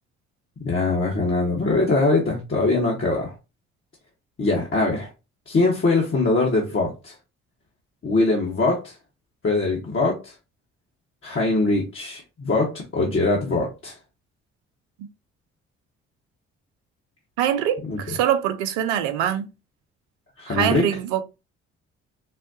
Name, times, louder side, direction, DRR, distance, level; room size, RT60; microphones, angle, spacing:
voice 1, 0.6-3.3 4.4-5.1 5.5-7.1 8.0-8.9 9.4-10.3 11.2-14.0 17.8-18.0 20.4-20.8, left 3 dB, 40° left, 1.2 m, -22 dB
voice 2, 17.4-19.5 20.5-21.2, right 10 dB, 85° right, 0.6 m, -23 dB
4.1 x 2.2 x 2.7 m
hypercardioid pair, 50°, 32 cm